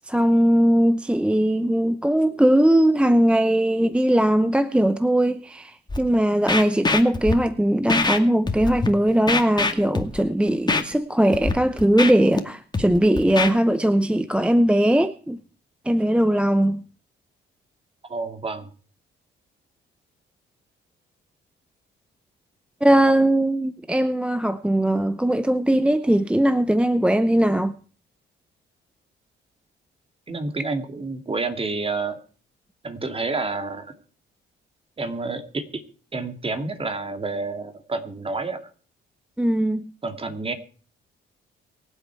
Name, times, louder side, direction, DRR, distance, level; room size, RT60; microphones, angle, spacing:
voice 1, 0.1-15.4 15.8-16.8 22.8-27.7 39.4-39.8, right 1 dB, 5° right, 0.7 m, -20 dB
Scratching (performance technique), 5.9-6.0 6.5-7.3 7.9-8.2 8.5-8.9 9.3-10.2 10.7-10.8 11.3-11.5 11.8-12.4 12.7-13.5, left 3 dB, 20° left, 2.2 m, -23 dB
voice 2, 18.1-18.7 30.3-32.2 32.8-34.0 35.0-35.8 36.1-38.6 40.0-40.5, right 3 dB, 30° right, 2.4 m, -29 dB
24.0 x 8.2 x 4.6 m
cardioid pair, 90°, 20 cm